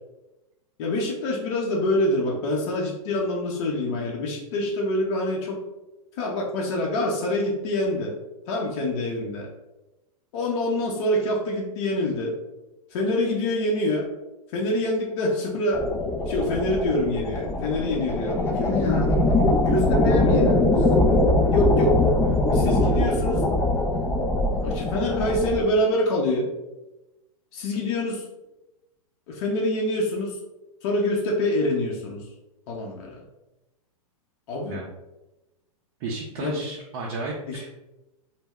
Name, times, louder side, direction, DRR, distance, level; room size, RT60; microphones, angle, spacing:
voice 1, 0.8-5.6 6.2-8.1 8.5-9.5 10.3-12.3 12.9-14.1 14.5-15.8 16.3-19.2 19.7-20.9 21.5-22.0 22.5-23.4 24.6-26.5 27.5-28.2 29.3-30.4 30.8-32.3 32.7-33.2 34.5-34.8 36.4-36.6 37.5-37.6, left 1 dB, 55° left, -2 dB, 0.6 m, -26 dB
sound 1, 15.7-25.6, left 2 dB, 15° left, 0.3 m, -22 dB
voice 2, 36.0-37.7, right 3 dB, 45° right, -2 dB, 0.5 m, -33 dB
2.1 x 2.0 x 3.5 m, 1.0 s
hypercardioid pair, 115°, 18 cm